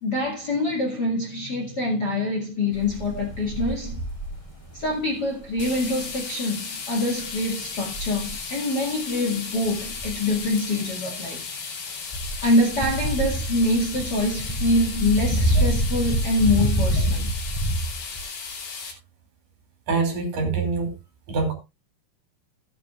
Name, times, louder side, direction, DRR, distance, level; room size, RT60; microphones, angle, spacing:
voice 1, 0.0-4.0 4.7-11.4 12.4-17.3, left 2 dB, 35° left, 2.0 m, -25 dB
sound 1, 2.7-5.0 5.4-6.2 7.3-7.4 7.9-8.5 9.7-10.5 12.1-18.2, right 1 dB, 10° left, 2.5 m, -26 dB
sound 2, 5.6-18.9, left 5 dB, 70° left, 4.5 m, -35 dB
voice 2, 19.9-20.9 21.3-21.5, right 4 dB, 60° right, 4.2 m, -25 dB
16.0 x 9.2 x 2.4 m
omnidirectional pair, 4.5 m